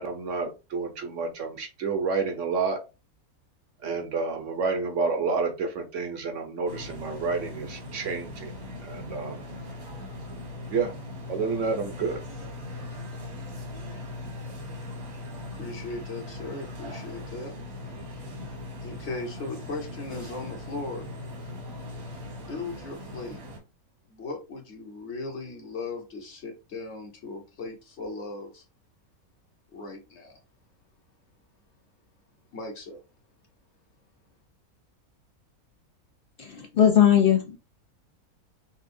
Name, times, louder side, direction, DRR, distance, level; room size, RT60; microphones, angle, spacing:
voice 1, 0.0-2.8 3.8-8.6 8.8-9.4 10.7-10.9 11.3-12.2, right 4 dB, 60° right, 1.0 m, -29 dB
sound 1, 6.7-23.6, left 1 dB, 75° right, 2.1 m, -39 dB
voice 2, 15.5-17.5 18.8-21.1 22.5-23.4 24.1-28.6 29.7-30.4 32.5-33.0, left 3 dB, 50° left, 1.2 m, -37 dB
voice 3, 36.4-37.6, left 9 dB, 85° left, 0.4 m, -19 dB
5.5 x 2.3 x 2.6 m
omnidirectional pair, 1.5 m